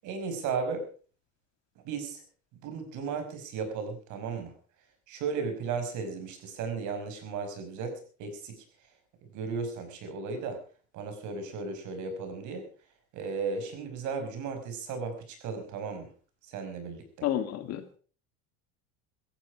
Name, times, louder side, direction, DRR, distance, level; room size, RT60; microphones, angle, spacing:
voice 1, 0.0-0.9 1.8-2.2 2.6-4.5 5.1-8.6 9.3-10.6 10.9-12.7 13.1-16.1 16.4-17.3, right 5 dB, 55° right, 7 dB, 5.6 m, -35 dB
voice 2, 17.2-18.0, left 11 dB, 45° left, 9 dB, 2.2 m, -31 dB
16.5 x 15.0 x 4.8 m, 0.40 s
cardioid pair, 140°, 36 cm